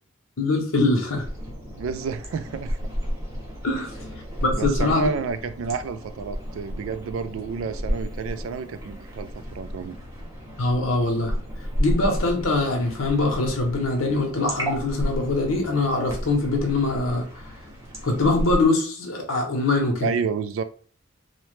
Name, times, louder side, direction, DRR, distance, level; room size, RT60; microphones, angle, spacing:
voice 1, 0.4-1.2 3.6-3.9 4.4-5.1 10.6-11.3 11.8-17.2 18.0-20.1, left 2 dB, 80° left, 2 dB, 0.7 m, -23 dB
sound 1, 1.2-18.7, equal, 15° right, 0.8 m, -32 dB
voice 2, 1.8-2.8 4.5-10.0 20.0-20.6, right 5 dB, 75° right, 12 dB, 0.3 m, -30 dB
2.8 x 2.1 x 3.1 m, 0.43 s
head